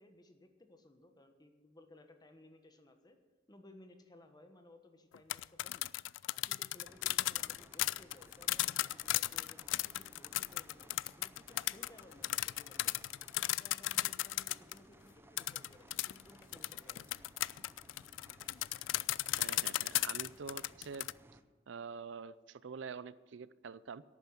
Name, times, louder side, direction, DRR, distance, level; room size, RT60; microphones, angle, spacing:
voice 1, 0.0-3.2 3.5-5.9 6.3-10.9 11.2-13.0 13.6-17.1, left 1 dB, 20° left, 6 dB, 1.3 m, -60 dB
sound 1, 5.1-14.8 15.4-21.1, left 17 dB, 75° left, 0.3 m, -35 dB
sound 2, 6.8-21.4, right 1 dB, 10° right, 0.7 m, -61 dB
voice 2, 19.4-21.1 21.7-24.0, right 5 dB, 70° right, 17 dB, 0.5 m, -46 dB
11.5 x 9.0 x 7.9 m, 1.3 s
head